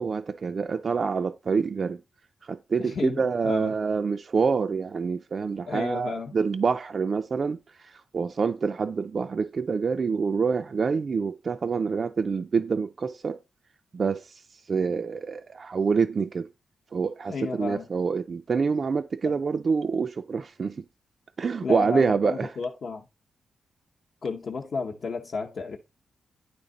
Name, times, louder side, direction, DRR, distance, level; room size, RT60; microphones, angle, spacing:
voice 1, 0.0-2.0 2.4-13.4 13.9-14.4 14.7-16.5 16.9-20.8 21.4-22.5, right 5 dB, 40° right, 0.3 m, -26 dB
voice 2, 2.8-3.7 5.7-6.3 17.3-17.9 19.2-19.4 21.6-23.1 24.2-25.8, left 4 dB, 50° left, 0.8 m, -32 dB
10.5 x 3.5 x 3.9 m
wide cardioid pair, 155°, 0 cm